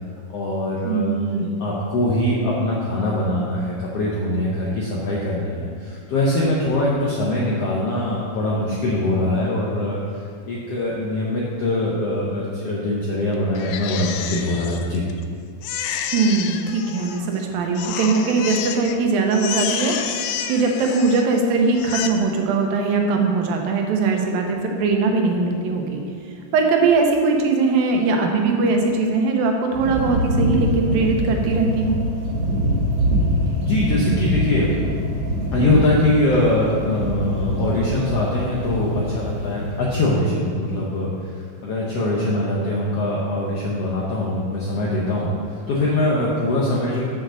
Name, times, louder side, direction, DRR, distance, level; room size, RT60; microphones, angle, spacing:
voice 1, 0.3-15.0 33.6-34.7 35.5-47.0, left 1 dB, 65° left, -5 dB, 1.5 m, -23 dB
voice 2, 0.8-1.5 16.1-20.0 20.2-26.0 26.5-32.0, right 4 dB, 80° right, 2 dB, 2.7 m, -20 dB
Crying sobbing, 13.6-15.2 15.6-17.4 17.8-19.0 19.3-21.4 21.7-22.1, left 9 dB, 90° left, 1.7 m, -29 dB
sound 1, 29.7-39.9, equal, 60° right, 2.9 m, -24 dB
7.3 x 6.5 x 6.3 m, 2.3 s
omnidirectional pair, 4.0 m